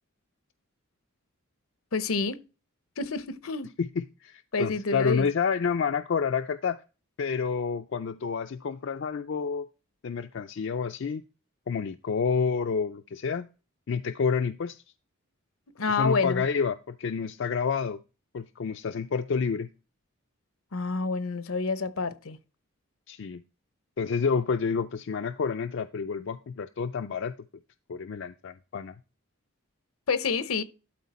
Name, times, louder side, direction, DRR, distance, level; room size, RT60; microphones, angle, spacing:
voice 1, 1.9-2.4 3.0-3.7 4.5-5.3 15.8-16.4 20.7-22.4 30.1-30.6, left 4 dB, 80° left, 0.8 m, -28 dB
voice 2, 3.8-6.8 7.2-9.7 10.0-11.2 11.7-13.5 13.9-14.8 15.9-18.0 18.3-19.7 23.1-23.4 24.0-27.3 27.9-29.0, left 5 dB, 60° left, 0.4 m, -29 dB
12.0 x 4.3 x 4.2 m
head